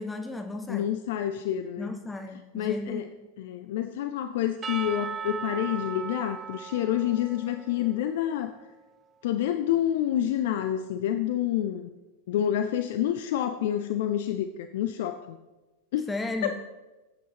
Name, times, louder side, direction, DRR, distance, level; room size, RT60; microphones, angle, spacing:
voice 1, 0.0-0.9 1.8-3.0 16.1-16.5, left 2 dB, 10° left, 6 dB, 0.7 m, -34 dB
voice 2, 0.7-1.9 2.5-3.1 3.4-8.5 9.2-11.9 12.3-15.4 15.9-16.1 16.4-16.5, left 11 dB, 55° left, 9 dB, 0.5 m, -28 dB
Percussion / Church bell, 4.6-9.0, right 7 dB, 25° right, 0.4 m, -38 dB
17.5 x 8.4 x 2.9 m, 1.1 s
figure-of-eight pair, 90°, 0 cm